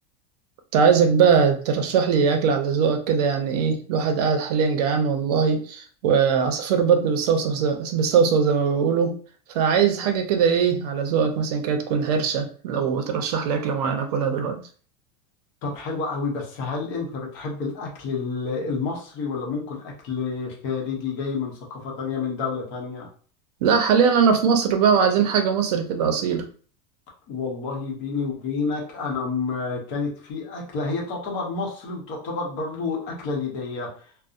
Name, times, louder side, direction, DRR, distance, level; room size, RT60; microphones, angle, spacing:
voice 1, 0.7-9.1 9.5-14.6 23.6-26.5, right 6 dB, 70° right, 6 dB, 0.5 m, -21 dB
voice 2, 15.6-23.1 27.3-34.1, left 4 dB, 40° left, -1 dB, 0.7 m, -29 dB
2.6 x 2.0 x 2.4 m, 0.43 s
supercardioid pair, 180°, 21 cm